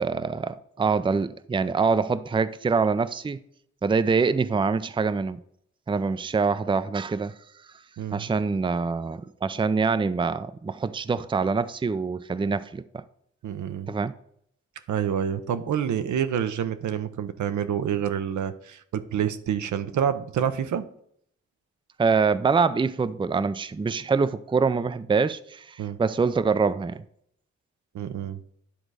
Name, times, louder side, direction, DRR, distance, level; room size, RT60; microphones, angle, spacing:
voice 1, 0.0-3.4 3.8-5.4 5.9-7.3 8.1-13.0 13.9-14.1 22.0-27.0, right 5 dB, 15° right, 0.5 m, -25 dB
voice 2, 8.0-8.3 13.4-13.9 14.9-20.8 25.8-26.0 27.9-28.4, right 9 dB, 75° right, 0.7 m, -28 dB
10.0 x 3.9 x 4.8 m
supercardioid pair, 45°, 30 cm